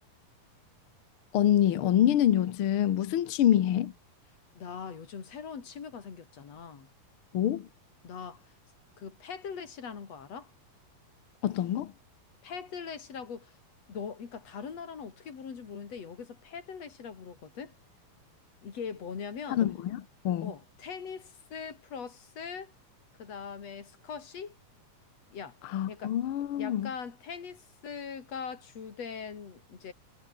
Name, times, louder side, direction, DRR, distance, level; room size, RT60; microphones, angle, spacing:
voice 1, 1.3-3.9 7.3-7.7 11.4-11.9 19.5-20.5 25.6-26.9, left 11 dB, 70° left, 1.3 m, -26 dB
voice 2, 4.6-6.9 8.0-8.5 9.0-10.5 12.4-13.6 13.9-17.7 18.6-19.6 20.4-22.7 23.2-24.6 25.3-25.6 25.9-26.2 26.6-29.9, left 6 dB, 50° left, 4.0 m, -41 dB
omnidirectional pair, 4.0 m